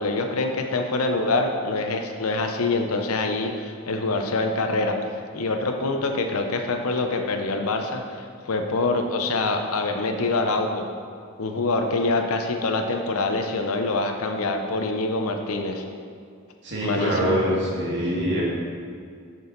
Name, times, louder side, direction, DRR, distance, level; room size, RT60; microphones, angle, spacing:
voice 1, 0.0-5.0 5.3-10.9 11.4-15.8 16.8-17.4, left 3 dB, 85° left, 4 dB, 0.7 m, -25 dB
voice 2, 16.6-18.4, equal, 55° right, -6 dB, 1.7 m, -24 dB
6.8 x 6.3 x 3.9 m, 2.2 s
head